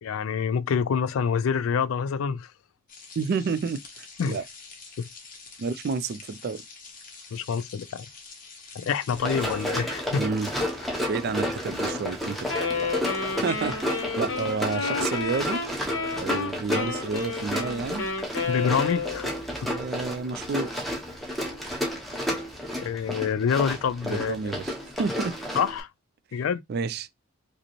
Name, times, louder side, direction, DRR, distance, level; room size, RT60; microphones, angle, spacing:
voice 1, 0.0-2.5 4.2-4.4 5.0-5.1 7.3-8.1 8.7-10.2 10.9-11.0 18.5-19.4 19.6-19.7 22.8-24.4 25.5-25.9 26.3-26.6, left 6 dB, 85° left, 0.3 m, -27 dB
sound 1, 2.9-9.7, left 4 dB, 45° left, 1.1 m, -46 dB
voice 2, 3.2-4.4 5.6-6.6 10.2-10.5 11.0-12.5 13.4-15.6 16.1-18.0 19.7-20.9 24.0-25.3 26.7-27.1, right 4 dB, 50° right, 0.3 m, -30 dB
Run, 9.1-25.8, equal, ahead, 0.7 m, -31 dB
Wind instrument woodwind instrument, 12.5-19.4, left 4 dB, 65° left, 0.9 m, -31 dB
5.0 x 2.0 x 3.0 m
head